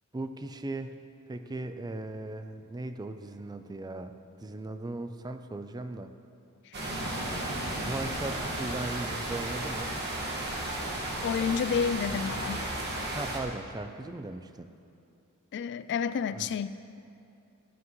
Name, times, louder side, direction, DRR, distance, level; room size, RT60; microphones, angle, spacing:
voice 1, 0.1-1.0 1.3-6.1 7.8-9.9 13.1-14.7 16.3-16.5, right 2 dB, 20° right, 9 dB, 0.4 m, -38 dB
sound 1, 6.7-13.4, right 1 dB, 50° right, 1.8 m, -34 dB
voice 2, 11.2-12.6 15.5-16.7, left 6 dB, 55° left, 14 dB, 0.3 m, -29 dB
15.0 x 12.0 x 3.1 m, 2.6 s
head